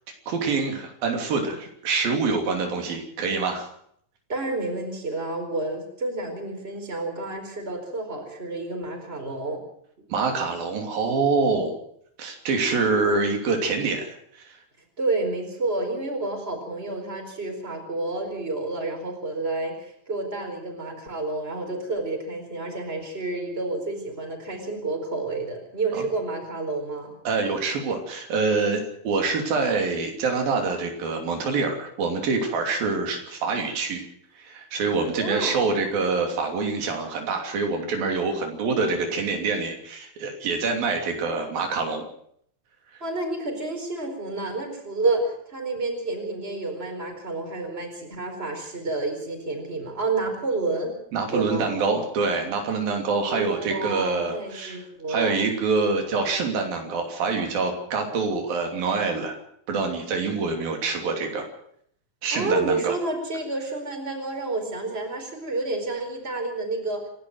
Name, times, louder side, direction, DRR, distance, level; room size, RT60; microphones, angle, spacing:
voice 1, 0.3-3.7 10.1-11.7 12.2-14.6 25.9-26.1 27.2-34.0 34.4-42.1 51.1-54.8 55.1-59.3 59.7-61.5 62.2-62.9, right 4 dB, 90° right, 3 dB, 4.8 m, -26 dB
voice 2, 4.3-9.6 15.0-27.1 35.1-35.7 43.0-51.0 51.3-51.7 53.3-55.4 62.3-67.0, right 2 dB, 15° right, 4 dB, 4.6 m, -29 dB
27.5 x 12.0 x 7.9 m, 0.67 s
omnidirectional pair, 4.0 m